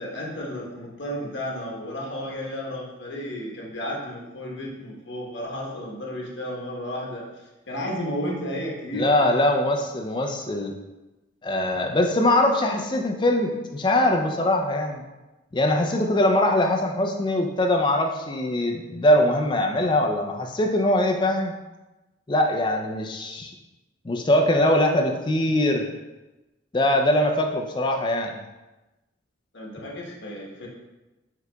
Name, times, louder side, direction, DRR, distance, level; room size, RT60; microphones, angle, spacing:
voice 1, 0.0-7.2 7.7-9.3 29.5-30.7, equal, 75° left, -3 dB, 1.1 m, -33 dB
voice 2, 8.9-10.7 11.4-15.0 15.5-21.5 22.3-23.5 24.0-25.9 26.7-28.4, left 1 dB, 25° left, 3 dB, 0.4 m, -22 dB
4.9 x 4.6 x 2.2 m, 1.1 s
head